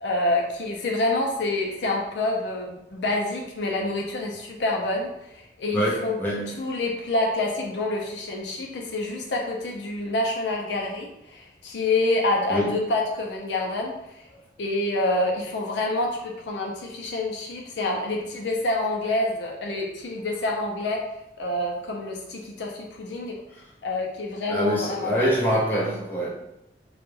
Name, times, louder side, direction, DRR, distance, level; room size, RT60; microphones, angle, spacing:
voice 1, 0.0-6.2 6.6-14.3 14.6-21.0 21.4-23.4 23.8-25.3, left 2 dB, 80° left, 0 dB, 0.5 m, -27 dB
voice 2, 5.7-6.5 12.5-12.7 24.5-26.3, equal, 10° left, -6 dB, 0.5 m, -24 dB
2.3 x 2.2 x 3.1 m, 0.83 s
head